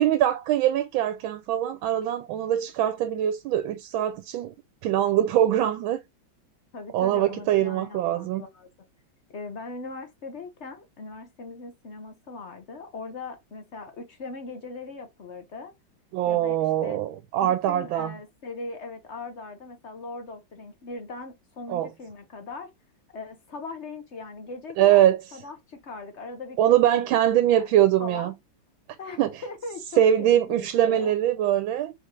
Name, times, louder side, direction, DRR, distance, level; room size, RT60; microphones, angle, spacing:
voice 1, 0.0-4.5 4.8-6.0 6.9-8.4 16.1-18.1 21.7-21.9 24.8-25.2 26.6-28.3 29.2-29.3 30.0-31.9, right 11 dB, 85° right, 1.4 m, -22 dB
voice 2, 6.7-8.7 9.3-15.7 16.3-17.0 17.4-22.7 23.1-27.1 27.5-28.3 29.0-31.1, left 3 dB, 50° left, 0.8 m, -40 dB
4.0 x 3.2 x 3.7 m
omnidirectional pair, 2.1 m